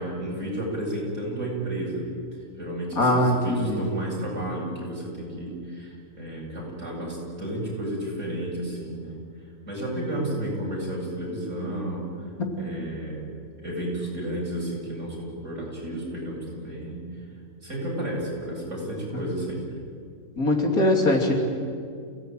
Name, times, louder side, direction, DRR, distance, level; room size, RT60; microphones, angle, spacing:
voice 1, 0.0-2.0 2.6-9.2 9.7-12.0 12.6-13.3 13.6-17.0 17.6-19.6, right 1 dB, 55° right, -4 dB, 8.4 m, -32 dB
voice 2, 3.0-3.9 12.4-12.7 20.4-21.3, left 1 dB, 75° left, 2 dB, 3.6 m, -22 dB
28.5 x 17.0 x 9.3 m, 2.3 s
omnidirectional pair, 1.5 m